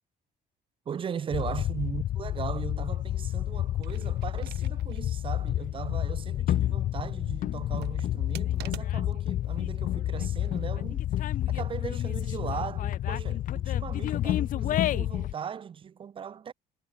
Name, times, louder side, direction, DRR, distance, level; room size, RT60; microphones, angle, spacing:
voice 1, 0.9-11.0 11.5-16.5, right 7 dB, 30° right, 0.5 m, -38 dB
sound 1, 1.3-15.3, left 12 dB, 55° left, 0.5 m, -29 dB
sound 2, 3.7-5.1 5.5-5.6 7.5-9.3 10.2-10.6, right 17 dB, 80° right, 3.9 m, -47 dB
cardioid pair, 110°, 17 cm